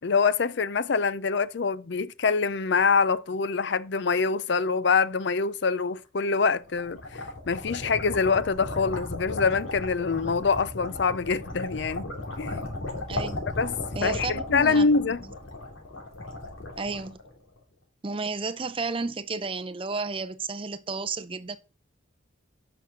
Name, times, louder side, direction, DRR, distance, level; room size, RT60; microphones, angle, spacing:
voice 1, 0.0-12.0 12.4-12.6 13.6-15.2, left 5 dB, 60° left, 0.5 m, -25 dB
sound 1, 6.4-17.6, left 2 dB, 85° left, 3.0 m, -36 dB
voice 2, 13.1-13.5 13.9-14.9 16.8-17.2 18.0-21.6, right 4 dB, 25° right, 0.5 m, -32 dB
8.1 x 6.0 x 6.2 m
head